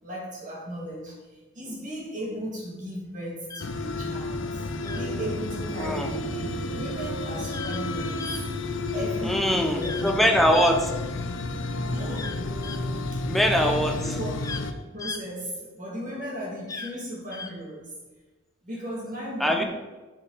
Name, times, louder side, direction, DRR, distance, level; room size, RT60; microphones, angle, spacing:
voice 1, 0.0-4.6 4.9-8.3 8.9-10.2 11.9-12.4 13.1-13.2 13.5-18.0 18.6-19.6, equal, 40° right, -3 dB, 2.6 m, -36 dB
sound 1, 3.5-3.7 4.8-5.1 7.5-7.8 8.2-8.4 9.8-10.1 10.5-11.4 12.1-12.8 14.1-14.6 15.0-15.2 16.7-16.9 17.3-17.5, left 4 dB, 15° left, 0.4 m, -37 dB
sound 2, 3.6-14.7, left 2 dB, 70° left, 0.7 m, -31 dB
sound 3, 4.2-14.2, left 1 dB, 35° left, 1.5 m, -43 dB
voice 2, 5.8-6.1 9.2-10.9 13.3-13.9 19.4-19.6, equal, ahead, 2 dB, 0.8 m, -22 dB
8.3 x 7.7 x 4.1 m, 1.2 s
head